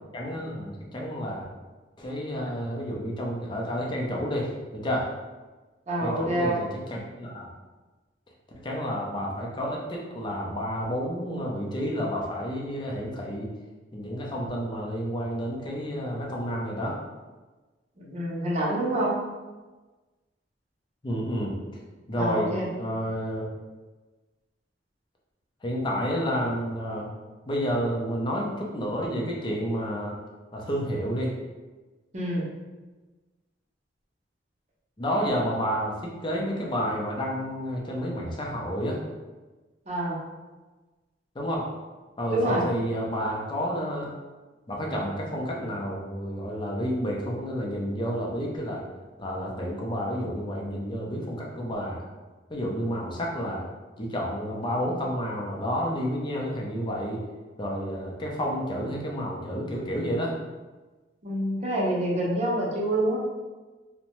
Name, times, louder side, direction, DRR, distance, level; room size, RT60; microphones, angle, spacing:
voice 1, 0.1-1.5 2.0-5.1 6.0-7.5 8.6-13.5 13.9-17.0 21.0-21.5 22.1-22.5 22.8-23.5 25.6-27.1 27.5-30.2 30.5-31.3 35.0-39.0 41.4-41.6 42.2-44.1 44.7-48.8 49.2-52.0 52.5-53.6 54.0-57.2 57.6-60.4, equal, 25° left, -2 dB, 0.5 m, -30 dB
voice 2, 5.9-6.6 18.0-19.2 22.2-22.7 32.1-32.4 39.9-40.2 42.3-42.7 61.2-63.2, right 1 dB, 40° right, -4 dB, 0.6 m, -26 dB
2.6 x 2.1 x 2.9 m, 1.2 s
head